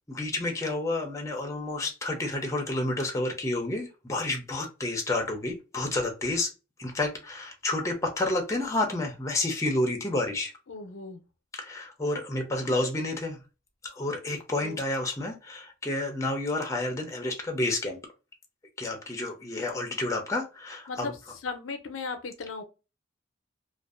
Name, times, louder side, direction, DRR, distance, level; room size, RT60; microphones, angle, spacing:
voice 1, 0.1-6.5 6.8-10.5 11.6-13.4 13.9-18.0 18.8-21.1, left 2 dB, 15° left, 0.6 m, -30 dB
voice 2, 10.7-11.2 14.6-14.8 20.9-21.1 21.4-22.6, left 4 dB, 80° left, 0.6 m, -36 dB
2.6 x 2.4 x 2.4 m
head